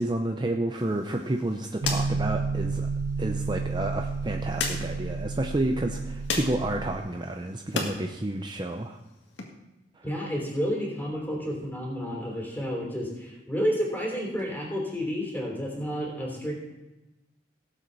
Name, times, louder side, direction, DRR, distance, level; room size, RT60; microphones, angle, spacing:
voice 1, 0.0-2.9 3.2-9.0 10.0-10.1, right 1 dB, 25° right, 4 dB, 0.6 m, -30 dB
sound 1, 0.8-8.0 8.3-9.4, left 4 dB, 80° left, 1.9 m, -37 dB
sound 2, 1.8-7.0, right 4 dB, 85° right, 0.5 m, -31 dB
voice 2, 10.0-16.5, equal, 10° left, -2 dB, 3.4 m, -30 dB
17.5 x 7.7 x 4.0 m, 1.0 s
head